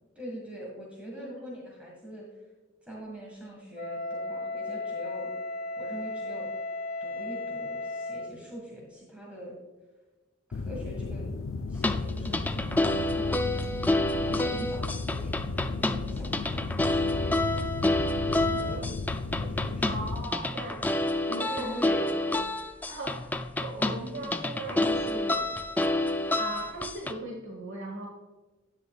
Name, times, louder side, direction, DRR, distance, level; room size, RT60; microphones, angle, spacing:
voice 1, 0.2-2.3 2.8-5.3 5.7-6.5 7.0-9.6 10.5-11.2 11.7-13.4 14.2-17.7 18.3-18.9 19.4-20.1 21.5-22.1, equal, 5° right, -4 dB, 1.8 m, -42 dB
Wind instrument woodwind instrument, 3.7-8.4, left 3 dB, 50° left, 1.5 m, -35 dB
sound 1, 10.5-20.2, left 3 dB, 85° left, 0.5 m, -34 dB
sound 2, 11.7-27.1, left 2 dB, 10° left, 0.4 m, -29 dB
voice 2, 19.8-21.8 22.8-25.5 26.3-28.1, right 2 dB, 65° right, 0 dB, 1.2 m, -39 dB
9.8 x 9.6 x 2.4 m, 1.2 s
head